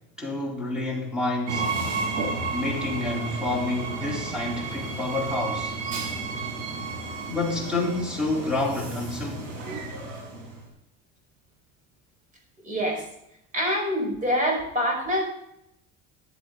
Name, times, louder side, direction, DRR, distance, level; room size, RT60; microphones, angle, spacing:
voice 1, 0.2-1.7 2.5-5.8 7.3-9.6, left 2 dB, 5° right, -2 dB, 4.0 m, -29 dB
Train, 1.5-10.7, right 3 dB, 90° right, 6.1 m, -32 dB
voice 2, 12.6-13.0 13.5-15.2, equal, 25° right, 1 dB, 5.2 m, -25 dB
15.0 x 10.0 x 3.9 m, 0.80 s
cardioid pair, 150°, 30 cm